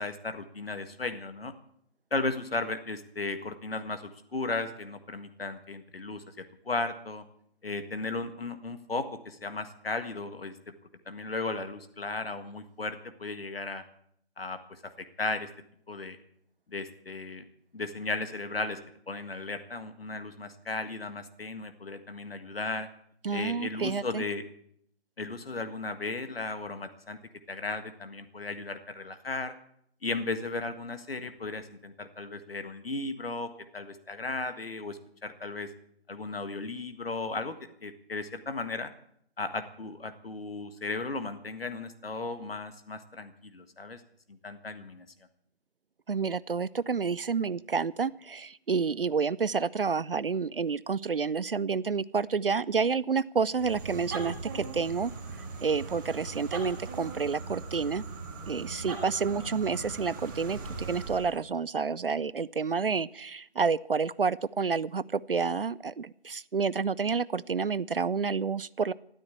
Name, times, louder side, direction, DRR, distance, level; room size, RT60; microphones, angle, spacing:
voice 1, 0.0-1.5 2.1-7.2 7.6-10.5 11.1-13.8 14.4-15.5 15.9-16.2 16.7-17.4 17.7-18.8 19.1-22.9 23.3-24.4 25.2-27.2 27.5-29.6 30.0-35.7 36.1-37.6 37.8-38.9 39.4-44.0 44.4-45.1, left 3 dB, 60° left, 9 dB, 1.7 m, -35 dB
voice 2, 23.2-24.2 46.1-55.1 55.6-58.0 58.5-68.9, right 5 dB, 55° right, 21 dB, 0.6 m, -29 dB
sound 1, 53.5-61.4, right 4 dB, 20° right, 1.9 m, -40 dB
13.0 x 13.0 x 8.4 m, 0.69 s
figure-of-eight pair, 160°, 33 cm